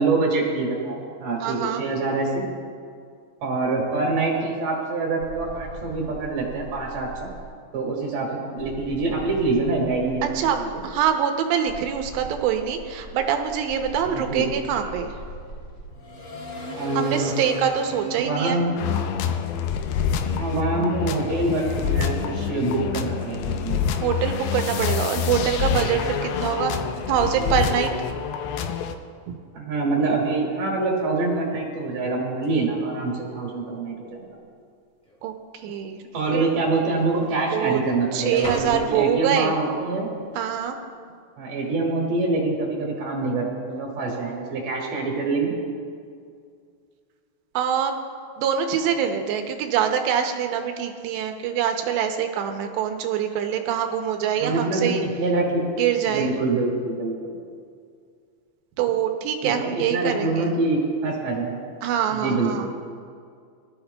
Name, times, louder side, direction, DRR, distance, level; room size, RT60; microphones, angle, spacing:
voice 1, 0.0-2.4 3.4-7.3 7.7-10.8 14.0-14.6 16.8-17.3 18.1-18.7 20.3-24.0 29.5-34.3 36.1-40.1 41.4-45.5 54.4-55.6 56.1-57.3 59.4-61.6 62.1-62.7, right 3 dB, 55° right, -2 dB, 1.9 m, -25 dB
voice 2, 1.4-1.8 10.3-15.1 16.9-18.6 24.0-26.8 27.1-27.9 29.3-29.4 35.2-35.3 35.6-36.0 36.3-36.4 37.5-37.8 38.1-39.5 40.4-40.8 47.5-47.9 48.4-55.0 55.8-56.3 58.8-60.5 61.8-62.7, right 8 dB, 80° right, 5 dB, 2.7 m, -24 dB
sound 1, 5.2-7.5 8.6-11.1 11.7-20.4, right 2 dB, 35° left, 2.6 m, -39 dB
sound 2, 18.8-29.0, left 7 dB, 80° left, 2.6 m, -26 dB
sound 3, 31.0-31.1 31.3-31.7 32.4-32.5 33.3-33.8 34.1-34.2 35.0-35.2 36.2-36.3 36.5-39.7 40.2-40.7, right 1 dB, 5° left, 0.6 m, -40 dB
20.0 x 12.0 x 2.2 m, 2.2 s
omnidirectional pair, 5.3 m